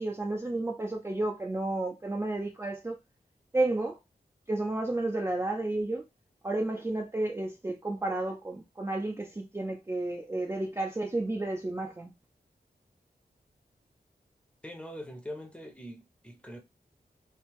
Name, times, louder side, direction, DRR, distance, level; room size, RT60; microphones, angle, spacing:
voice 1, 0.0-2.9 3.5-4.0 4.5-6.0 6.4-12.1, right 2 dB, 15° right, 0.5 m, -31 dB
voice 2, 14.6-16.6, left 1 dB, 5° left, 0.8 m, -43 dB
3.4 x 2.7 x 3.1 m
wide cardioid pair, 120°, 17 cm